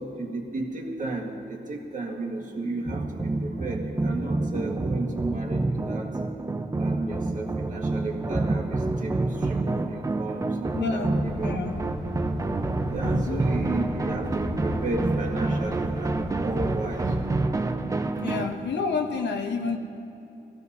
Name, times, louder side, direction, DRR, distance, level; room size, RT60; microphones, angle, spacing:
voice 1, 0.0-6.1 6.8-11.7 12.9-17.5, right 2 dB, 45° right, 1 dB, 1.6 m, -33 dB
sound 1, 2.9-18.5, right 2 dB, 20° right, 0.5 m, -28 dB
voice 2, 10.7-11.8 12.5-13.4 18.2-19.8, left 4 dB, 75° left, 3 dB, 1.0 m, -30 dB
sound 2, 11.1-17.4, left 1 dB, 20° left, 0.9 m, -36 dB
21.0 x 15.0 x 2.7 m, 2.7 s
wide cardioid pair, 170°, 18 cm